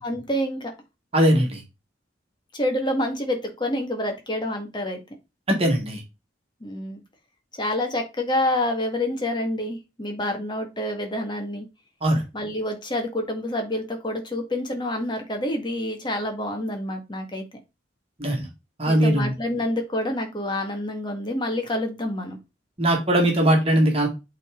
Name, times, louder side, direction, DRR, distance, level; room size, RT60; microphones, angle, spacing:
voice 1, 0.0-0.7 2.5-5.0 6.6-7.0 7.5-11.7 12.3-17.4 18.9-22.4, left 1 dB, 25° left, 3 dB, 1.7 m, -27 dB
voice 2, 1.1-1.6 5.5-6.0 12.0-12.2 18.2-18.5 18.8-19.3 22.8-24.1, right 1 dB, 35° right, 1 dB, 1.8 m, -20 dB
8.1 x 3.9 x 3.7 m, 0.26 s
head